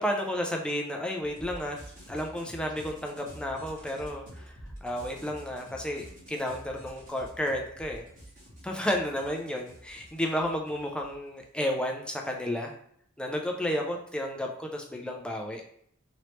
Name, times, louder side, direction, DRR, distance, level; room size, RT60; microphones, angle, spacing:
voice 1, 0.0-1.8 2.1-4.5 4.8-8.1 8.6-12.7 13.2-15.6, equal, 5° left, 1 dB, 0.3 m, -32 dB
sound 1, 1.2-11.4, equal, 40° right, 1.3 m, -48 dB
3.0 x 2.9 x 3.0 m, 0.66 s
head